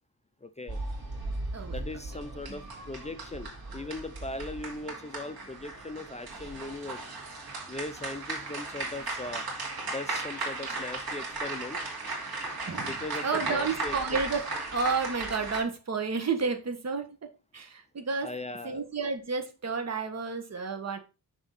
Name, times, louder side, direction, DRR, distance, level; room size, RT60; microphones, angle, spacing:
voice 1, 0.4-0.8 1.7-7.0 7.7-9.4 9.9-11.8 12.8-13.9 18.2-18.8, left 2 dB, 20° left, 9 dB, 0.6 m, -39 dB
sound 1, 0.7-15.6, right 2 dB, 80° right, 2.3 m, -36 dB
voice 2, 1.5-1.8 2.5-2.6 12.7-13.0 13.2-17.2 17.5-18.3 18.6-21.0, right 4 dB, 45° right, 6 dB, 1.5 m, -31 dB
6.3 x 6.1 x 4.2 m, 0.30 s
wide cardioid pair, 140°, 37 cm